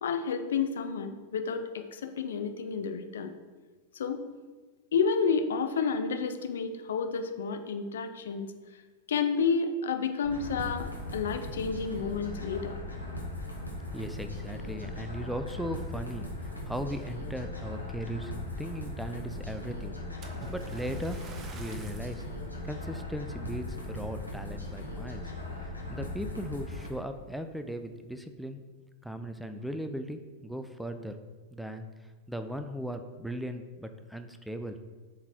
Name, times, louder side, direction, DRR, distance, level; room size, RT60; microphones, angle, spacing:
voice 1, 0.0-3.3 3.9-4.2 4.9-8.5 9.1-12.8, left 5 dB, 65° left, 7 dB, 0.5 m, -30 dB
sound 1, 10.2-26.9, left 1 dB, 90° left, 1.1 m, -39 dB
voice 2, 13.8-18.3 18.6-22.3 22.6-28.6 29.0-31.2 31.5-31.9 32.3-34.8, equal, ahead, 7 dB, 0.4 m, -38 dB
Splash splatter, 20.2-22.3 22.9-23.1 23.7-23.8, right 3 dB, 30° right, 0.7 m, -47 dB
7.3 x 4.0 x 4.3 m, 1.4 s
figure-of-eight pair, 90°, 0 cm